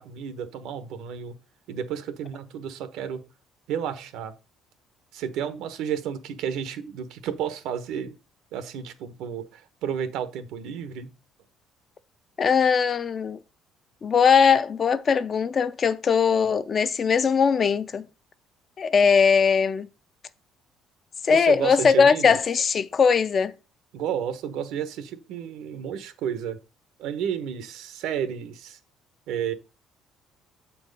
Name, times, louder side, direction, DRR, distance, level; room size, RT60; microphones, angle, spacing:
voice 1, 0.0-1.4 1.7-3.2 3.7-4.3 5.1-8.2 8.5-11.1 21.3-22.4 23.9-26.6 27.0-28.8 29.3-29.5, right 8 dB, 80° right, 1.0 m, -32 dB
voice 2, 12.4-13.4 14.0-18.1 18.8-19.9 21.2-23.5, left 6 dB, 35° left, 0.5 m, -20 dB
7.3 x 4.5 x 5.3 m
cardioid pair, 140°, 0 cm